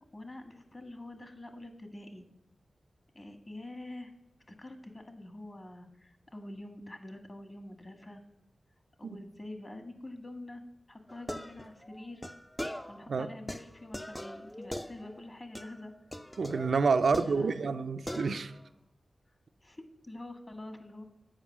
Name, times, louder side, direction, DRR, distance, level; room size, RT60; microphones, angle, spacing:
voice 1, 0.1-2.3 3.1-4.1 4.6-8.2 9.0-10.6 10.9-12.3 12.9-15.9 17.1-17.8 19.6-21.0, left 1 dB, 35° left, 1.6 m, -46 dB
sound 1, 11.1-13.1 13.5-15.3 15.6-15.8 16.1-17.8 18.1-18.7, equal, 10° left, 0.5 m, -42 dB
voice 2, 16.4-18.5, right 4 dB, 75° right, 0.4 m, -28 dB
8.8 x 5.2 x 7.2 m
cardioid pair, 65°, 0 cm